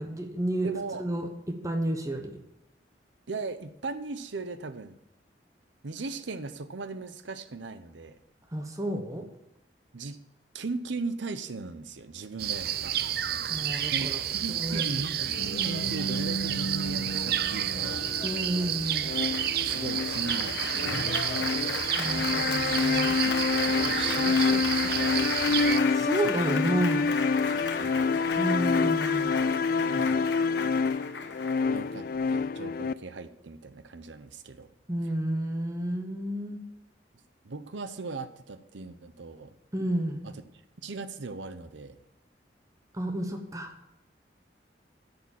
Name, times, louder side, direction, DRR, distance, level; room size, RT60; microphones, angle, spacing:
voice 1, 0.0-0.7 1.0-2.4 8.5-9.2 13.5-14.2 14.6-15.0 18.2-19.1 22.0-23.2 25.9-27.1 28.4-29.4 34.9-36.6 39.7-40.3 42.9-43.7, right 1 dB, 20° right, 4 dB, 1.1 m, -31 dB
voice 2, 0.6-1.1 3.3-5.0 5.8-8.2 9.2-9.3 9.9-10.2 10.5-13.0 13.9-18.1 19.6-21.8 22.6-25.6 27.1-27.2 27.5-28.1 29.5-30.3 31.7-34.7 37.4-39.5 40.2-40.4 40.8-42.0, right 3 dB, 85° right, 12 dB, 0.8 m, -39 dB
sound 1, 12.4-25.8, right 10 dB, 55° right, 0.5 m, -30 dB
Applause, 15.2-32.2, left 3 dB, 75° left, 1.1 m, -35 dB
sound 2, 19.0-32.9, left 4 dB, 50° left, 0.3 m, -27 dB
10.5 x 6.9 x 7.1 m, 0.85 s
head